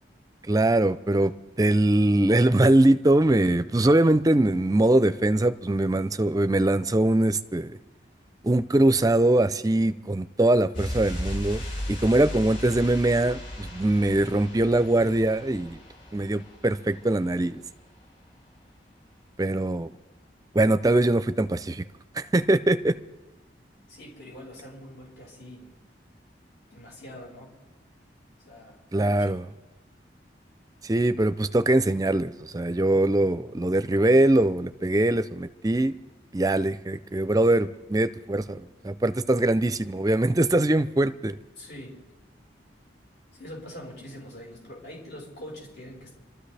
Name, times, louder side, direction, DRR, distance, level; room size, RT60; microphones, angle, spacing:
voice 1, 0.5-1.3 1.6-7.8 8.4-15.8 16.1-17.6 19.4-19.9 20.5-21.8 22.2-22.9 28.9-29.4 30.8-36.0 36.3-41.3, right 1 dB, 20° right, 12 dB, 0.5 m, -22 dB
sound 1, 10.7-17.3 17.5-17.6, left 1 dB, 45° left, 3.5 m, -36 dB
voice 2, 23.9-25.8 26.7-27.5 28.4-29.4 41.6-42.0 43.3-46.2, left 1 dB, 65° left, -3 dB, 5.8 m, -44 dB
27.0 x 13.0 x 3.4 m, 1.1 s
head